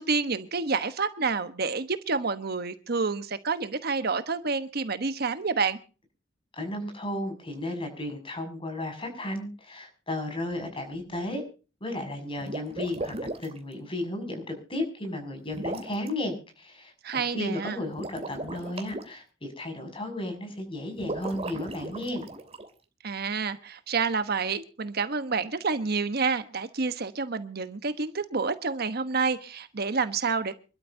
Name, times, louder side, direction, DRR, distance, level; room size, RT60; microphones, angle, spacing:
voice 1, 0.0-5.8 17.0-17.8 23.0-30.5, right 4 dB, 55° right, 11 dB, 1.1 m, -28 dB
voice 2, 6.5-11.4 11.8-22.3, left 1 dB, 30° left, 6 dB, 6.4 m, -34 dB
sound 1, 12.4-13.6 15.5-16.1 17.9-19.0 21.0-22.7, right 2 dB, 35° right, 2.8 m, -36 dB
27.0 x 12.5 x 2.7 m, 0.35 s
head